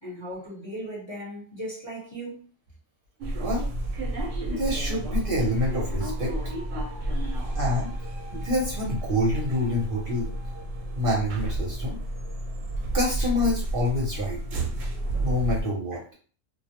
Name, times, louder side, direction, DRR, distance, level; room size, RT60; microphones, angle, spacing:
voice 1, 0.0-2.4 7.1-7.4 12.8-12.9, right 1 dB, 25° left, 0.8 m, -38 dB
sound 1, 3.2-15.6, right 1 dB, 85° right, 0.9 m, -31 dB
voice 2, 4.3-6.3 7.6-7.9 8.3-10.3 10.9-12.0 12.9-14.4 15.1-16.0, left 1 dB, 50° right, 0.8 m, -27 dB
2.2 x 2.0 x 2.8 m
omnidirectional pair, 1.3 m